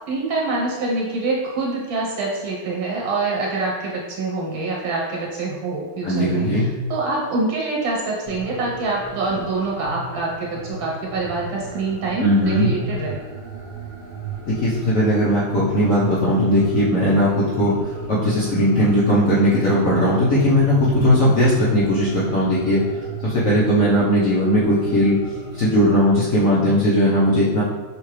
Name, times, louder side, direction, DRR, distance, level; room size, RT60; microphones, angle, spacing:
voice 1, 0.1-13.2 23.8-24.1, right 3 dB, 75° right, -3 dB, 1.9 m, -25 dB
voice 2, 6.0-6.7 12.2-12.7 14.5-17.8 18.1-22.8 23.2-25.2 25.5-27.6, equal, 60° left, -8 dB, 0.9 m, -18 dB
sound 1, 8.3-26.3, right 5 dB, 50° right, 0.6 m, -35 dB
6.4 x 2.3 x 3.2 m, 1.3 s
omnidirectional pair, 2.2 m